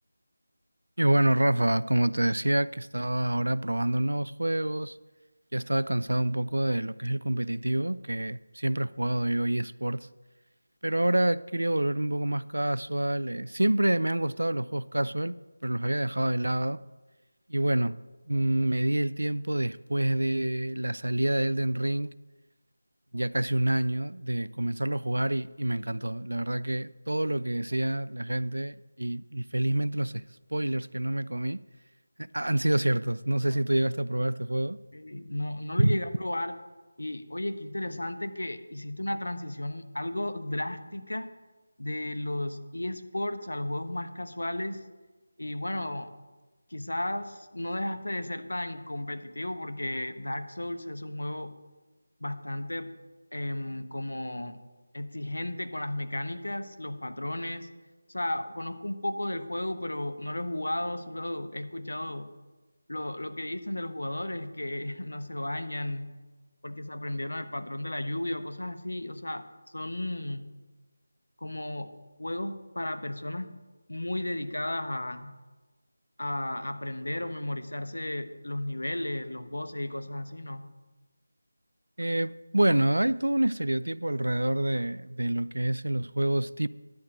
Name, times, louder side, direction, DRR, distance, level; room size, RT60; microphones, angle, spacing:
voice 1, 1.0-5.0 5.5-10.1 10.8-15.4 15.6-16.8 17.5-18.0 18.3-22.1 23.1-30.2 30.5-31.6 32.2-34.8 35.8-36.0 82.0-86.7, right 1 dB, 80° right, 0.3 m, -27 dB
voice 2, 34.9-36.6 37.0-41.3 41.8-44.8 45.4-46.1 46.7-51.6 52.2-52.9 53.3-54.6 54.9-57.7 58.1-62.3 62.9-66.1 66.6-69.4 69.7-70.5 71.4-73.5 73.9-75.3 76.2-80.7, left 1 dB, 80° left, 0.9 m, -34 dB
11.0 x 4.4 x 7.3 m
figure-of-eight pair, 165°, 0 cm